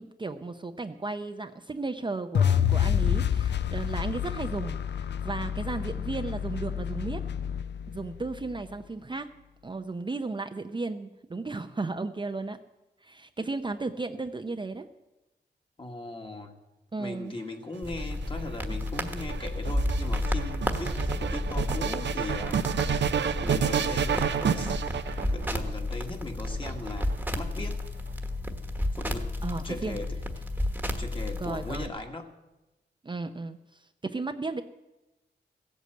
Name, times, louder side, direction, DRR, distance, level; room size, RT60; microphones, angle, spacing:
voice 1, 0.0-7.2 7.9-9.3 9.6-12.6 13.0-14.9 16.9-17.3 29.4-30.0 31.4-31.9 33.0-34.6, right 3 dB, 25° right, 7 dB, 0.6 m, -34 dB
sound 1, 2.3-8.5, left 9 dB, 70° left, 0.5 m, -28 dB
voice 2, 15.8-16.5 17.0-22.6 23.4-24.7 25.3-27.8 28.9-29.3 29.6-30.1 31.0-32.3, left 2 dB, 25° left, 3 dB, 1.7 m, -39 dB
sound 2, 17.8-31.9, left 1 dB, 10° right, 1.3 m, -32 dB
sound 3, 17.8-25.7 26.5-27.4, right 7 dB, 70° right, 0.7 m, -30 dB
16.0 x 8.3 x 7.8 m, 1.0 s
wide cardioid pair, 90°, 19 cm